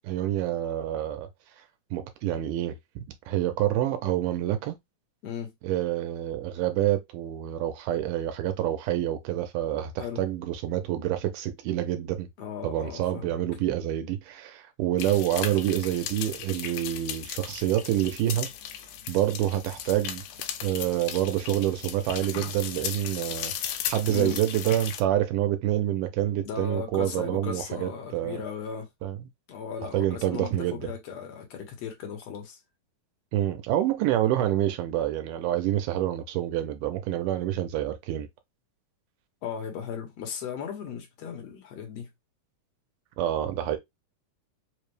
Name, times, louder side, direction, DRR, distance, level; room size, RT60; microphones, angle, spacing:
voice 1, 0.0-1.3 1.9-4.8 5.6-12.3 12.6-18.5 19.1-20.2 20.6-28.4 29.0-29.2 29.9-30.9 33.3-38.3 43.2-43.8, right 12 dB, 85° right, 2.2 m, -27 dB
voice 2, 12.4-13.4 24.1-24.4 26.4-28.9 29.5-32.6 39.4-42.1, left 7 dB, 65° left, 1.9 m, -36 dB
sound 1, 15.0-25.0, left 10 dB, 85° left, 2.2 m, -36 dB
5.2 x 2.1 x 3.2 m
omnidirectional pair, 3.6 m